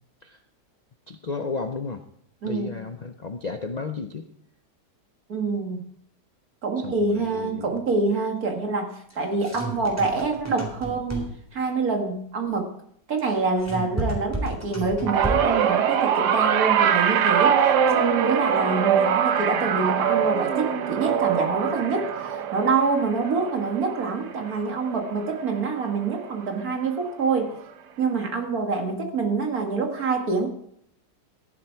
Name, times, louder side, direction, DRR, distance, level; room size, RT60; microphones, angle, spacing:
voice 1, 1.1-2.0 2.4-4.3 6.8-7.8, left 4 dB, 75° left, 7 dB, 0.3 m, -33 dB
voice 2, 2.4-2.7 5.3-5.8 6.6-11.3 11.5-12.7 13.1-17.6 17.9-27.5 28.0-30.5, right 4 dB, 55° right, 3 dB, 2.3 m, -26 dB
sound 1, 9.1-11.5 13.2-15.6, right 2 dB, 10° right, 3.5 m, -32 dB
sound 2, 15.1-25.5 25.8-26.3 27.4-27.5, right 8 dB, 75° right, 1.4 m, -23 dB
14.5 x 11.0 x 4.6 m, 0.69 s
omnidirectional pair, 1.9 m